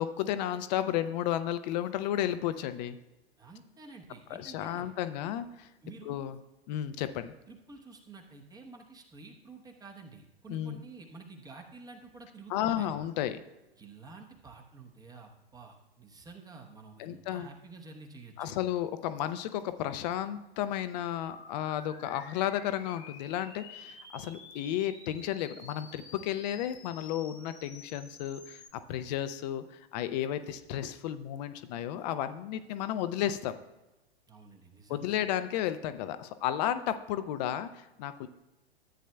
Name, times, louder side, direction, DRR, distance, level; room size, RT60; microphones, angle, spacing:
voice 1, 0.0-3.0 4.3-5.7 6.0-6.4 6.7-7.3 10.5-10.8 12.5-13.4 17.0-17.5 18.4-33.5 34.9-38.3, left 11 dB, 45° left, 11 dB, 0.7 m, -33 dB
voice 2, 3.4-4.9 5.8-6.2 7.5-12.9 13.8-18.6 34.3-35.2, right 3 dB, 10° right, 2 dB, 1.0 m, -50 dB
sound 1, 21.3-28.7, left 3 dB, 85° left, 2.8 m, -51 dB
13.5 x 8.4 x 2.2 m, 1.0 s
hypercardioid pair, 105°, 31 cm